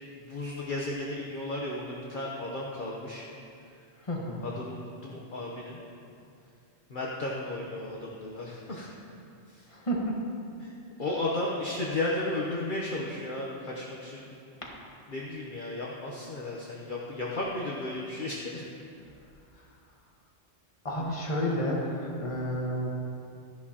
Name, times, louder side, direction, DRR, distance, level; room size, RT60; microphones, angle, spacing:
voice 1, 0.3-3.3 4.4-5.8 6.9-8.9 9.5-9.7 10.6-10.7 11.0-14.3 15.1-18.7, left 2 dB, 50° left, -4 dB, 1.1 m, -34 dB
voice 2, 4.0-4.5 9.7-10.2 11.0-11.2 14.6-14.7 20.8-22.9, equal, 30° left, -2 dB, 1.5 m, -31 dB
13.0 x 11.0 x 2.9 m, 2.5 s
omnidirectional pair, 1.2 m